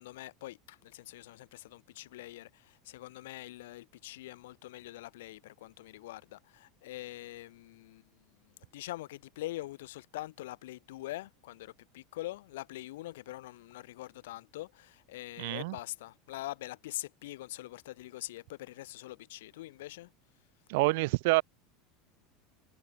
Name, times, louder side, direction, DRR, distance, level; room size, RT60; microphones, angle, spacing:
voice 1, 0.0-20.1, left 16 dB, 85° left, 7.4 m, -44 dB
voice 2, 15.4-15.8 20.7-21.4, right 24 dB, 65° right, 0.7 m, -27 dB
supercardioid pair, 165°, 0 cm